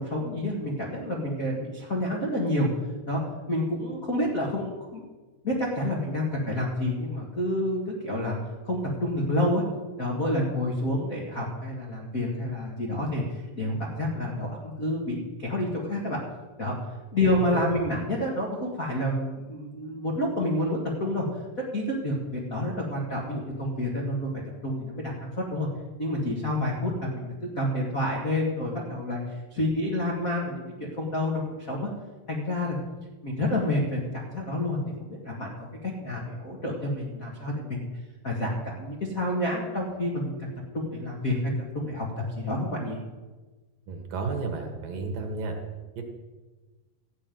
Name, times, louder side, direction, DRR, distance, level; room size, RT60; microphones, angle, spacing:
voice 1, 0.0-2.7 3.1-3.2 3.5-5.0 5.4-8.4 8.6-9.6 10.0-13.2 13.5-16.2 16.6-16.7 17.1-21.2 21.7-24.3 24.6-25.7 26.0-29.2 29.5-31.9 32.3-32.8 33.2-37.9 38.2-43.0, left 1 dB, 70° left, -3 dB, 0.8 m, -29 dB
voice 2, 43.9-45.5 46.0-46.1, right 4 dB, 65° right, 3 dB, 2.6 m, -32 dB
14.0 x 5.2 x 9.2 m, 1.3 s
omnidirectional pair, 4.8 m